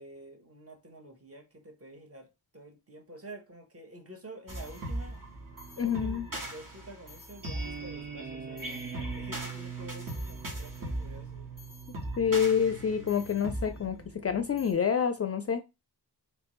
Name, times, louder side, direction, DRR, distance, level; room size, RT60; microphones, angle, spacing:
voice 1, 0.0-5.2 5.8-11.5, right 1 dB, 35° right, 1.2 m, -49 dB
sound 1, 4.5-14.7, right 2 dB, 50° right, 1.6 m, -39 dB
voice 2, 5.8-6.3 12.2-15.6, left 7 dB, 35° left, 0.4 m, -28 dB
3.3 x 3.1 x 3.1 m
cardioid pair, 60°, 41 cm